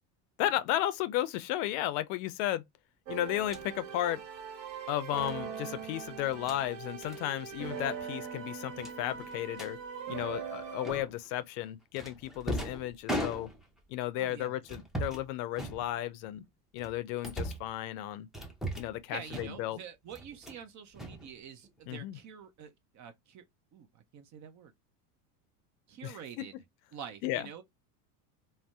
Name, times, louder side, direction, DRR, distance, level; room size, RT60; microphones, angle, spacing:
voice 1, 0.4-2.6 3.1-4.2 4.9-9.8 10.1-13.5 13.9-16.4 16.7-18.3 18.7-19.8 21.9-22.2 26.0-26.2 27.2-27.5, left 13 dB, 60° left, 0.5 m, -34 dB
sound 1, 3.1-11.0, right 7 dB, 60° right, 1.0 m, -41 dB
sound 2, 3.4-3.7 5.2-5.4 6.2-6.6 7.0-7.2 7.5-7.7 8.0-8.1 8.8-9.7 10.8-11.3 12.0-13.8 14.6-15.3 15.5-16.3 16.8-17.7 18.3-19.0 19.3-19.8 20.1-20.6 20.9-21.8, equal, ahead, 0.6 m, -39 dB
voice 2, 14.2-14.5 19.1-23.4 23.7-24.7 25.9-26.5 26.9-27.6, right 8 dB, 40° right, 0.7 m, -47 dB
2.6 x 2.1 x 3.3 m
supercardioid pair, 100°, 45 cm